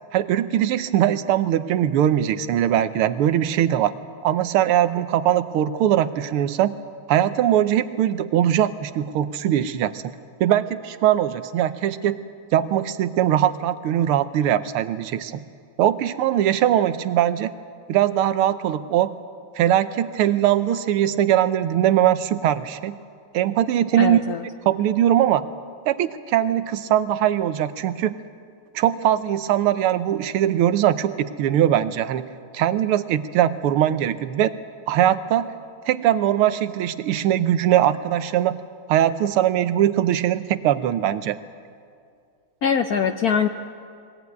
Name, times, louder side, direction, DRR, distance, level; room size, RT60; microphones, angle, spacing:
voice 1, 0.1-3.9 4.2-6.7 7.1-10.1 10.4-12.2 12.5-15.4 15.8-17.5 17.9-19.1 19.6-23.0 23.3-24.2 24.7-25.4 25.9-28.2 28.8-32.3 32.5-34.5 34.9-35.5 35.9-38.6 38.9-41.4, right 11 dB, 85° right, 12 dB, 1.7 m, -21 dB
voice 2, 24.0-24.4 42.6-43.5, left 7 dB, 65° left, 7 dB, 0.9 m, -22 dB
21.5 x 17.0 x 9.4 m, 2.3 s
omnidirectional pair, 2.4 m